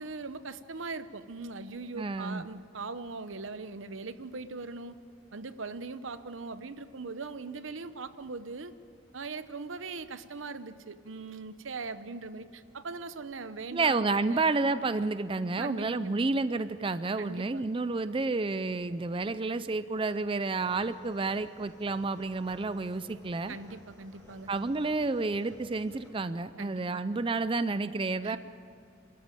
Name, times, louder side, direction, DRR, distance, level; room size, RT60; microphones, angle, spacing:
voice 1, 0.0-5.0 5.3-8.7 9.1-14.5 15.6-16.2 17.2-17.6 23.5-24.5 26.6-27.0 28.2-28.4, right 4 dB, 85° right, 12 dB, 0.9 m, -40 dB
voice 2, 1.9-2.4 13.7-23.5 24.5-28.4, right 3 dB, 25° right, 13 dB, 0.4 m, -30 dB
sound 1, 20.4-26.1, equal, 15° left, 4.2 m, -56 dB
27.5 x 13.5 x 9.0 m, 2.6 s
head